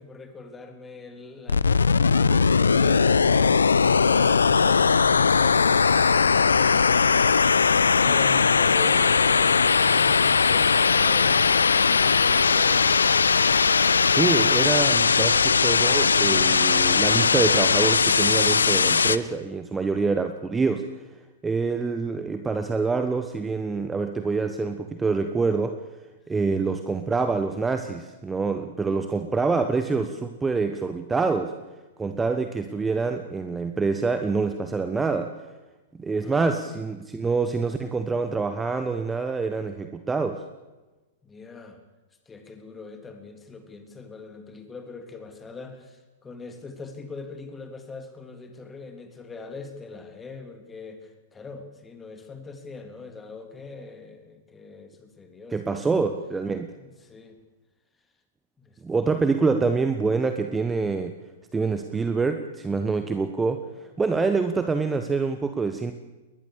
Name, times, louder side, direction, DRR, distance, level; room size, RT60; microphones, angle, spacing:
voice 1, 0.0-13.1 26.5-26.7 36.2-36.8 41.2-41.8 42.2-55.9 56.8-57.4 58.6-58.8, left 4 dB, 15° left, 6 dB, 3.2 m, -42 dB
sound 1, 1.5-19.2, left 5 dB, 75° left, 0.8 m, -19 dB
voice 2, 14.1-20.9 21.4-25.8 26.3-31.5 32.0-35.4 36.0-40.4 55.5-56.7 58.8-61.1 61.5-65.9, right 4 dB, 10° right, 8 dB, 1.3 m, -26 dB
21.5 x 20.0 x 6.8 m, 1.1 s
figure-of-eight pair, 105°, 0 cm